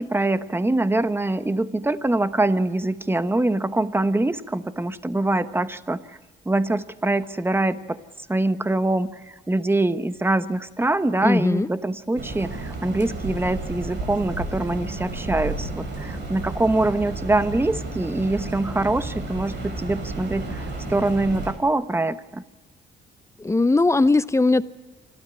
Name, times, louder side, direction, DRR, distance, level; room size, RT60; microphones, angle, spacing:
voice 1, 0.0-6.0 6.4-8.0 8.3-22.4, right 2 dB, 10° right, 12 dB, 1.0 m, -24 dB
voice 2, 11.2-11.7 23.4-24.6, left 3 dB, 15° left, 15 dB, 0.7 m, -19 dB
sound 1, 12.2-21.5, right 2 dB, 65° right, 5.5 m, -32 dB
26.5 x 13.0 x 9.7 m, 1.3 s
cardioid pair, 90°, 20 cm